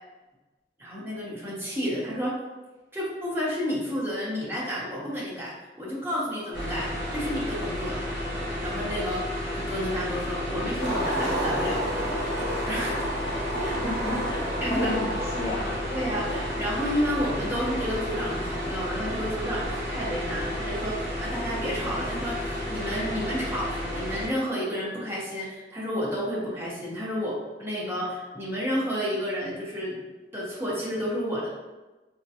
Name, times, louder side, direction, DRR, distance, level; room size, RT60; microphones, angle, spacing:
voice 1, 0.8-2.4 2.9-8.0 8.6-11.8 12.6-13.0 13.6-13.7 14.6-14.9 15.9-30.0 30.3-31.5, equal, 15° right, -6 dB, 0.7 m, -31 dB
sound 1, 6.5-24.3, equal, 55° right, 1.4 m, -32 dB
Skateboard, 10.8-20.9, equal, 75° right, 0.8 m, -33 dB
voice 2, 13.2-15.9, left 2 dB, 55° left, -3 dB, 0.6 m, -33 dB
3.5 x 2.2 x 2.8 m, 1.2 s
head